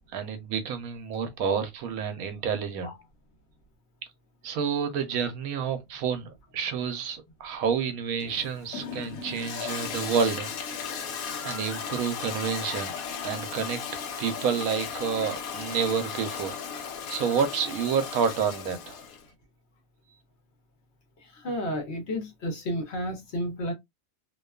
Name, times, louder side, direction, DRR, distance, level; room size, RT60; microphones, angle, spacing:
voice 1, 0.1-2.9 4.4-10.9 11.4-12.9 13.2-13.8 14.2-19.0, right 6 dB, 80° right, 1.1 m, -29 dB
Toilet flush, 8.2-19.2, left 6 dB, 80° left, 1.0 m, -36 dB
Laughter, 11.2-11.9 12.7-15.8 16.2-16.3, left 2 dB, 10° left, 0.7 m, -47 dB
voice 2, 21.2-23.7, equal, 55° left, 1.0 m, -32 dB
2.7 x 2.2 x 2.2 m
omnidirectional pair, 1.5 m